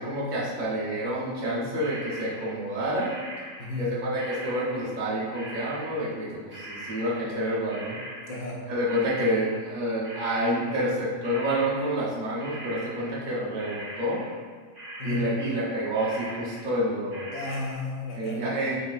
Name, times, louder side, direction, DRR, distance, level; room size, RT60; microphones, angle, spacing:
voice 1, 0.0-3.1 3.8-8.0 8.7-14.2 15.0-17.3 18.2-18.8, equal, 40° right, -6 dB, 0.9 m, -28 dB
sound 1, 1.8-11.0 11.2-14.5 14.7-15.7 15.9-17.7, right 1 dB, 60° right, 2.0 m, -42 dB
voice 2, 3.6-3.9 8.3-8.6 15.0-15.3 17.3-18.5, left 2 dB, 70° left, -4 dB, 1.0 m, -33 dB
5.3 x 2.9 x 2.5 m, 1.5 s
omnidirectional pair, 1.5 m